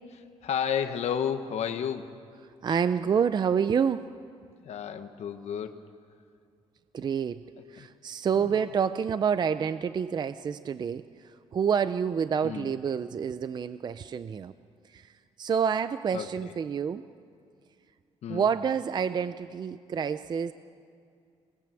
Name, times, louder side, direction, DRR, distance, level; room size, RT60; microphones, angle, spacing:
voice 1, 0.1-2.1 4.6-5.8 7.8-7.9 8.3-8.6 12.4-12.7 16.1-16.5 18.2-18.5, left 8 dB, 65° left, 6 dB, 1.2 m, -32 dB
voice 2, 2.6-4.1 6.9-7.4 7.7-11.0 11.5-14.5 14.9-15.1 15.4-17.0 18.3-20.5, right 7 dB, 35° right, 12 dB, 0.5 m, -28 dB
29.0 x 19.0 x 7.7 m, 2.3 s
cardioid pair, 135°, 12 cm